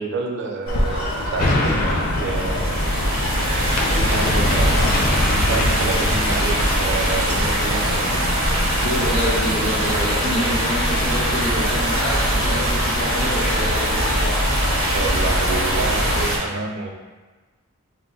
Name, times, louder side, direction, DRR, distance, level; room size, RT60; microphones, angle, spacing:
voice 1, 0.0-3.0 3.9-8.1 14.8-16.9, right 3 dB, 55° right, 1 dB, 0.4 m, -28 dB
sound 1, 0.7-16.3, left 1 dB, 90° left, 0.6 m, -26 dB
sound 2, 1.4-12.8 13.3-13.4, left 1 dB, 40° left, 0.3 m, -26 dB
sound 3, 2.1-16.4, right 1 dB, 80° right, 0.8 m, -23 dB
voice 2, 8.8-14.3, equal, 25° left, -8 dB, 0.7 m, -27 dB
2.4 x 2.1 x 3.7 m, 1.3 s
head